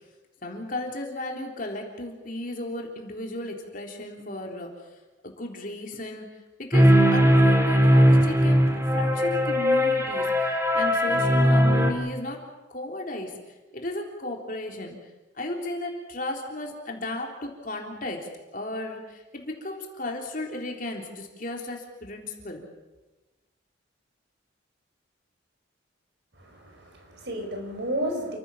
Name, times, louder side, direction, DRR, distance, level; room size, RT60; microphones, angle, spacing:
voice 1, 0.4-4.7 5.2-6.3 6.6-12.4 12.7-13.4 13.7-14.9 15.4-22.6, left 1 dB, 45° left, 1 dB, 3.6 m, -34 dB
sound 1, 6.7-11.9, equal, 15° right, 2.3 m, -19 dB
voice 2, 26.4-28.4, right 1 dB, 60° right, 4 dB, 5.1 m, -32 dB
29.0 x 15.5 x 7.3 m, 1.2 s
head